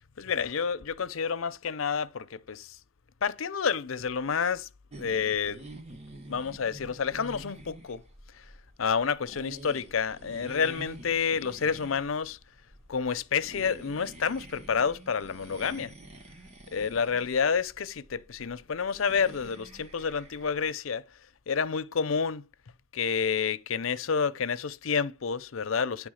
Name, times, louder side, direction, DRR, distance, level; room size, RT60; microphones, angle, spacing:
voice 1, 0.0-2.8 3.2-4.7 5.0-5.6 6.3-8.0 8.3-8.4 8.8-12.4 12.9-15.9 16.7-21.0 21.5-22.4 22.9-26.1, left 6 dB, 85° left, 0.6 m, -29 dB
sound 1, 4.9-20.7, right 1 dB, 35° right, 1.2 m, -48 dB
9.7 x 3.5 x 6.3 m
head